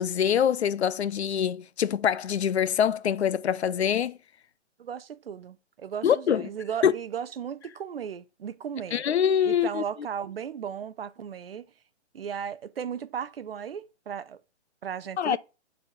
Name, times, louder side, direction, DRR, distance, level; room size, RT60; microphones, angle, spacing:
voice 1, 0.0-4.2 6.0-6.5 6.8-6.9 8.9-9.8 15.2-15.4, left 8 dB, 65° left, 0.6 m, -24 dB
voice 2, 4.8-9.0 9.4-11.7 12.1-14.4 14.8-15.4, right 8 dB, 55° right, 0.5 m, -36 dB
9.6 x 4.1 x 3.2 m
hypercardioid pair, 175°, 35 cm